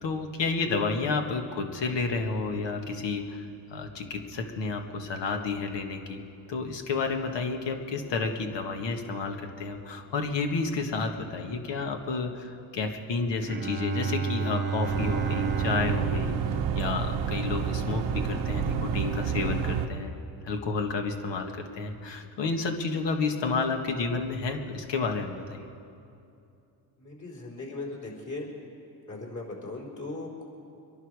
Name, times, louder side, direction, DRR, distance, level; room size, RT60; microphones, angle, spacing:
voice 1, 0.0-16.4 16.7-25.6, left 4 dB, 70° left, 4 dB, 1.7 m, -31 dB
Bowed string instrument, 13.4-17.9, right 5 dB, 25° right, 0.8 m, -32 dB
sound 1, 14.8-19.9, right 7 dB, 80° right, 1.0 m, -29 dB
voice 2, 27.0-28.5 29.1-30.4, left 2 dB, 40° left, -2 dB, 4.2 m, -38 dB
24.5 x 11.5 x 4.9 m, 2.6 s
cardioid pair, 80°, 44 cm